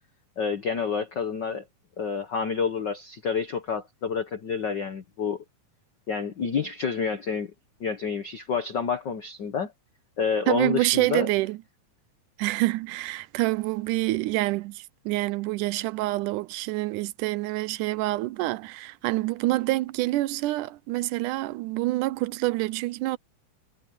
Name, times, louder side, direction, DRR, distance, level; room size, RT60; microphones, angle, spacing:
voice 1, 0.4-1.6 2.0-5.4 6.1-7.5 7.8-9.7 10.2-11.3, left 6 dB, 70° left, 1.0 m, -28 dB
voice 2, 10.5-11.6 12.4-23.2, right 18 dB, 85° right, 2.1 m, -27 dB
omnidirectional pair, 3.6 m